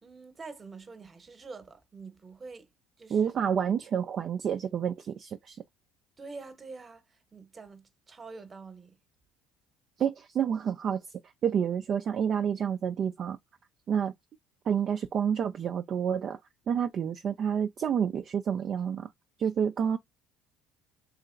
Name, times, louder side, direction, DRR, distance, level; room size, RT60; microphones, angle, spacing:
voice 1, 0.0-2.7 3.0-3.3 6.2-9.0, right 4 dB, 30° right, 1.0 m, -46 dB
voice 2, 3.1-5.6 10.0-11.0 11.4-13.4 13.9-14.1 14.7-16.4 16.7-19.1 19.4-20.0, right 8 dB, 50° right, 0.4 m, -29 dB
3.1 x 2.8 x 2.4 m
supercardioid pair, 80°, 0 cm